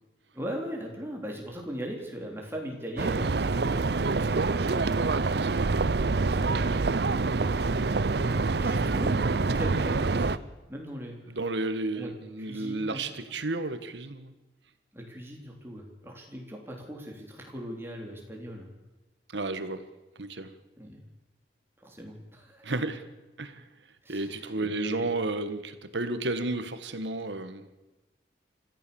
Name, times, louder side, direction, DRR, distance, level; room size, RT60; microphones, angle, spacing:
voice 1, 0.3-5.2 7.1-10.4 10.7-11.4 12.0-12.1 12.4-13.4 14.9-18.7 20.8-21.0 21.8-22.7 24.0-25.1, equal, 15° right, 0 dB, 3.7 m, -39 dB
sound 1, 3.0-10.4, right 3 dB, 60° right, 0.6 m, -26 dB
voice 2, 4.9-5.5 6.7-7.0 11.3-14.3 19.3-19.9 20.2-20.5 22.6-23.0 23.4-23.6 24.1-27.7, right 2 dB, 80° right, 11 dB, 1.5 m, -32 dB
26.0 x 15.0 x 7.1 m, 1.1 s
head